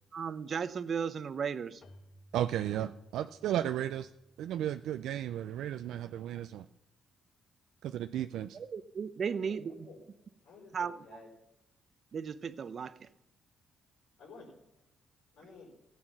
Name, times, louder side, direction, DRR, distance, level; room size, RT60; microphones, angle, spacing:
voice 1, 0.1-1.8 8.5-9.9 10.7-10.9 12.1-13.1, right 6 dB, 50° right, 14 dB, 0.7 m, -35 dB
Keyboard (musical), 1.8-6.3, equal, 50° left, 1.4 m, -61 dB
voice 2, 2.3-4.1 4.4-6.7 7.8-8.6, right 11 dB, 80° right, 10 dB, 0.4 m, -34 dB
voice 3, 9.2-10.0 10.4-11.3 14.2-14.5 15.3-15.7, left 3 dB, 90° left, -3 dB, 5.3 m, -52 dB
16.0 x 8.7 x 6.0 m, 0.91 s
cardioid pair, 90°, 0 cm